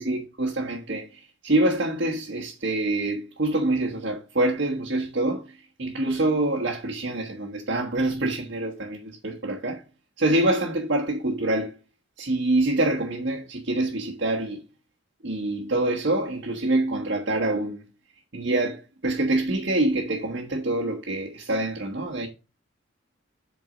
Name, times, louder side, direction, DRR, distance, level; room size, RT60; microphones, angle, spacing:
voice 1, 0.0-9.8 10.2-11.7 12.2-14.6 15.2-17.8 18.3-22.3, right 2 dB, 60° right, 1.3 m, -26 dB
8.1 x 4.6 x 5.1 m
head